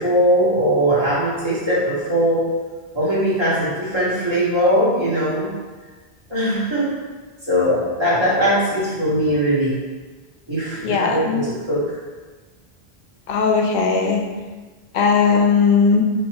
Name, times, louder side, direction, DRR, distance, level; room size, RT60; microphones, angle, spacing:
voice 1, 0.0-2.5 2.9-5.5 6.3-6.9 7.5-9.8 10.5-11.9, equal, 25° right, -9 dB, 1.4 m, -20 dB
voice 2, 10.8-11.5 13.3-14.2 14.9-16.0, left 5 dB, 65° left, 2 dB, 0.7 m, -17 dB
3.5 x 2.6 x 4.6 m, 1.3 s
omnidirectional pair, 1.0 m